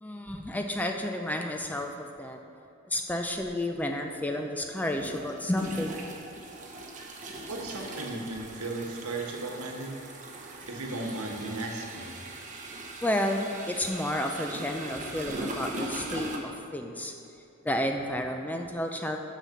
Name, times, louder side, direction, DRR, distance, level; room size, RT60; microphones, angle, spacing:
voice 1, 0.0-2.4 2.8-6.0 13.0-16.3 16.7-17.1 17.6-19.2, left 1 dB, 5° left, 3 dB, 0.4 m, -31 dB
sound 1, 3.4-3.5 4.8-16.4, right 2 dB, 35° right, 0.9 m, -40 dB
voice 2, 7.5-9.9 10.7-12.1, right 2 dB, 80° right, 1 dB, 1.2 m, -35 dB
6.6 x 5.8 x 6.3 m, 2.7 s
head